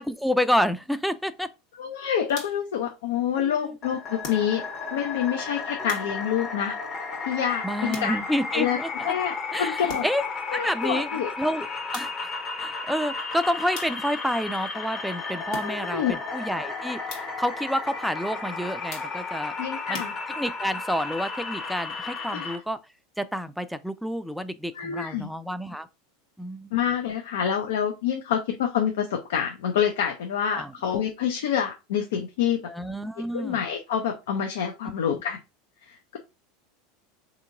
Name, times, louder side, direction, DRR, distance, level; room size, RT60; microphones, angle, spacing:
voice 1, 0.0-1.5 3.4-3.8 5.7-5.9 7.6-9.1 9.5-10.2 10.5-11.1 11.4-11.7 11.9-12.3 12.6-17.0 17.4-19.5 19.9-20.0 20.4-22.8 23.2-25.9 26.4-26.7 30.5-30.7 32.7-33.6, equal, ahead, 0.3 m, -29 dB
voice 2, 1.8-4.6 4.9-6.8 7.3-8.2 8.5-8.8 9.0-10.1 10.5-11.3 15.6-16.2 19.6-20.1 22.3-22.5 24.7-25.3 26.7-32.6 33.3-35.4 35.9-36.2, left 8 dB, 80° left, 0.5 m, -27 dB
sound 1, 2.3-2.8 4.2-4.9 5.9-6.5 7.9-8.5 9.9-10.4 11.9-12.4 13.7-14.3 15.5-16.1 17.1-17.5 18.9-19.4 19.9-20.7, left 4 dB, 65° left, 1.2 m, -42 dB
sound 2, 3.8-22.6, left 4 dB, 40° left, 0.9 m, -34 dB
3.7 x 2.8 x 2.5 m
hypercardioid pair, 100°, 0 cm